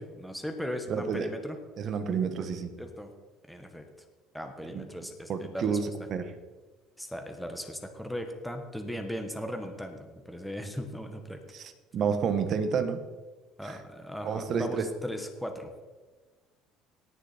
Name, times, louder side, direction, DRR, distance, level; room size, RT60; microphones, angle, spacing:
voice 1, 0.0-1.6 2.8-3.1 3.5-3.9 4.3-5.8 7.0-11.4 13.6-15.9, equal, ahead, 4 dB, 1.5 m, -38 dB
voice 2, 0.9-1.3 1.8-2.7 4.7-4.8 5.3-5.8 6.1-6.3 11.5-13.0 13.6-13.8 14.2-14.8, right 6 dB, 45° right, 9 dB, 1.3 m, -29 dB
18.5 x 6.8 x 4.4 m, 1.3 s
cardioid pair, 130°, 0 cm